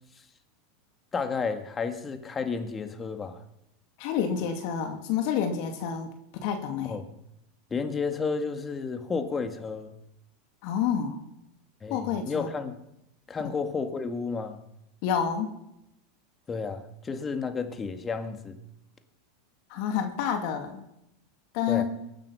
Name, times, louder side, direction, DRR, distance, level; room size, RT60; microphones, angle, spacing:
voice 1, 1.1-3.4 6.8-7.0 7.7-10.0 11.8-12.8 13.3-14.6 16.5-18.6 21.7-21.8, left 5 dB, 25° left, 7 dB, 2.0 m, -32 dB
voice 2, 4.0-7.0 10.6-11.2 11.9-12.5 15.0-15.5 19.7-20.8 21.5-21.8, left 8 dB, 60° left, 5 dB, 2.4 m, -29 dB
22.5 x 8.9 x 5.8 m, 0.83 s
hypercardioid pair, 95°, 0 cm